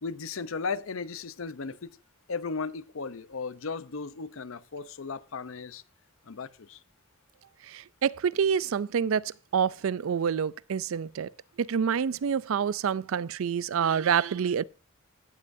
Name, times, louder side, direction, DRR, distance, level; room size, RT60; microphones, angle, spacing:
voice 1, 0.0-2.0 2.3-5.8 6.3-6.8, left 4 dB, 75° left, 0.7 m, -36 dB
voice 2, 7.7-11.3 11.6-14.6, right 7 dB, 75° right, 0.4 m, -27 dB
16.5 x 7.6 x 2.6 m
head